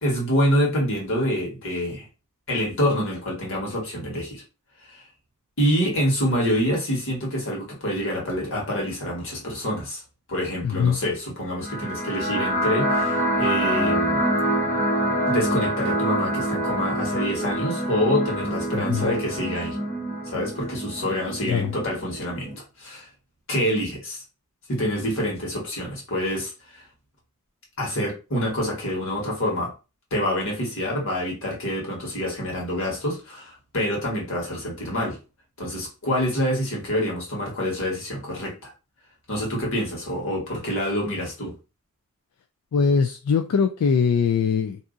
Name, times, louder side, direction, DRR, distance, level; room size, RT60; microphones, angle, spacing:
voice 1, 0.0-2.1 2.5-4.4 4.9-5.0 5.6-10.0 10.3-14.3 15.3-19.8 20.3-23.1 23.5-24.2 24.7-26.8 27.8-29.7 30.1-35.2 35.6-38.7 39.3-41.5, equal, 60° left, 1.5 m, -26 dB
voice 2, 10.6-11.0 18.7-19.1 21.5-21.7 42.7-44.8, left 6 dB, 85° left, 0.3 m, -22 dB
sound 1, 11.6-22.5, right 1 dB, 35° left, 1.0 m, -26 dB
2.7 x 2.4 x 3.7 m
head